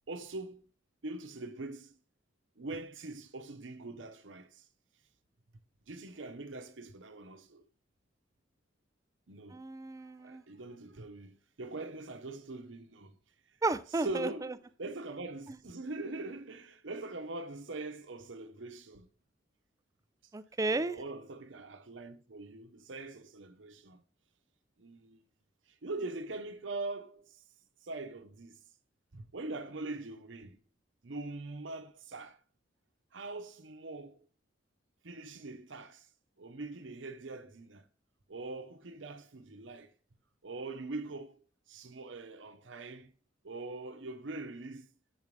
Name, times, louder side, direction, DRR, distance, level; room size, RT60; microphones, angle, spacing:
voice 1, 0.1-0.7 1.0-2.0 2.6-4.7 5.9-7.6 9.3-9.6 10.0-13.2 13.9-14.5 14.8-19.1 20.7-24.0 24.8-25.2 25.8-27.4 27.8-28.6 29.1-30.6 31.0-32.4 33.1-34.2 35.0-36.1 36.4-37.9 38.3-39.9 40.4-41.4 41.7-43.1 43.4-44.9, right 2 dB, 90° right, 0.9 m, -42 dB
voice 2, 9.5-10.4 13.6-14.3 20.3-21.0, right 3 dB, 20° right, 0.4 m, -33 dB
7.9 x 5.3 x 3.2 m
head